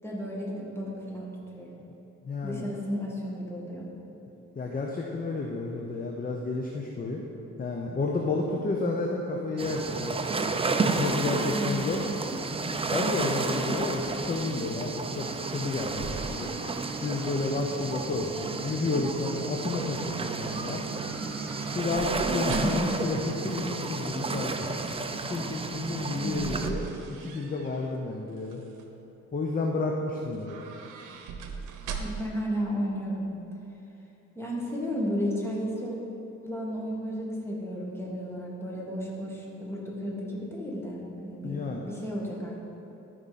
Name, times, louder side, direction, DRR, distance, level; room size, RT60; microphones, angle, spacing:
voice 1, 0.0-1.7 2.4-3.9 11.4-11.9 22.2-23.0 26.1-26.7 32.0-33.4 34.4-36.0 36.4-42.6, equal, 10° left, -4 dB, 2.0 m, -33 dB
voice 2, 2.2-2.7 4.1-4.2 4.6-7.2 7.6-10.2 10.8-12.0 12.9-16.7 17.0-20.8 21.7-24.8 25.3-28.6 29.3-30.6 41.4-41.9, left 3 dB, 30° left, 0 dB, 0.8 m, -31 dB
sound 1, 9.6-26.7, right 3 dB, 20° right, 0.5 m, -31 dB
sound 2, 15.7-17.8 18.2-18.7 20.9-23.0 25.8-28.0 28.4-28.9 30.3-32.4 32.7-32.8, right 5 dB, 90° right, 0.8 m, -40 dB
13.0 x 5.2 x 4.2 m, 2.9 s
cardioid pair, 90°, 30 cm